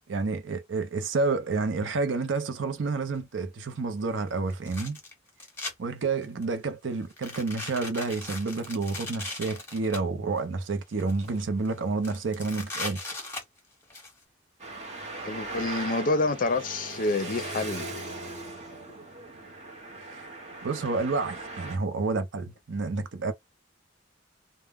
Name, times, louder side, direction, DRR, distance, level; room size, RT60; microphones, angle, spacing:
voice 1, 0.1-5.0 5.8-13.0 20.1-20.3 20.6-23.3, right 3 dB, 80° right, 0.6 m, -29 dB
sound 1, 3.2-3.3 4.5-5.7 6.2-6.6 7.1-10.0 10.7-11.4 11.6-11.7 12.0-14.1, left 2 dB, 10° left, 0.9 m, -38 dB
Traffic noise roadway noise, 14.6-21.8, right 2 dB, 35° right, 0.9 m, -39 dB
voice 2, 15.2-17.9, left 3 dB, 45° left, 0.5 m, -28 dB
2.1 x 2.0 x 3.4 m
head